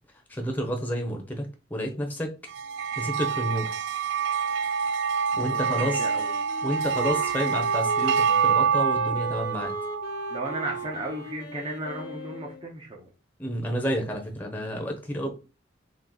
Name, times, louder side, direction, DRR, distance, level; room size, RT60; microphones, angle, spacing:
voice 1, 0.3-2.3 3.0-3.7 5.4-6.0 6.6-9.7 13.4-15.3, equal, 10° left, 2 dB, 0.7 m, -30 dB
sound 1, 2.5-11.1, right 6 dB, 65° right, 0.3 m, -27 dB
voice 2, 5.3-6.3 10.3-13.1, right 1 dB, 25° right, -1 dB, 0.7 m, -35 dB
Wind instrument woodwind instrument, 5.6-12.7, left 1 dB, 55° left, 0.7 m, -38 dB
2.9 x 2.8 x 3.9 m, 0.30 s
head